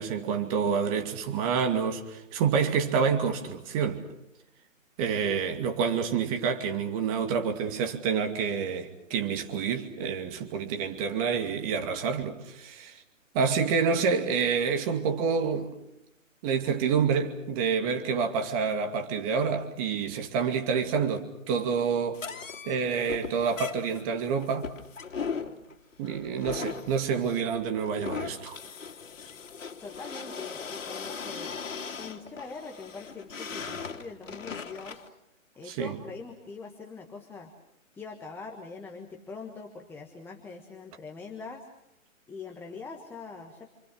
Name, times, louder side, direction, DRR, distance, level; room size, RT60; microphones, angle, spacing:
voice 1, 0.0-4.0 5.0-13.0 13.3-15.7 16.4-22.2 22.7-24.7 26.0-28.6 35.6-36.0, right 6 dB, 25° right, 5 dB, 2.4 m, -28 dB
sound 1, 22.1-35.1, left 5 dB, 65° left, 3.3 m, -39 dB
voice 2, 29.8-31.6 32.0-35.0 35.6-37.5 37.9-41.7 42.3-43.7, left 4 dB, 5° left, 2 dB, 1.5 m, -43 dB
29.0 x 26.0 x 6.4 m, 0.83 s
hypercardioid pair, 150°, 41 cm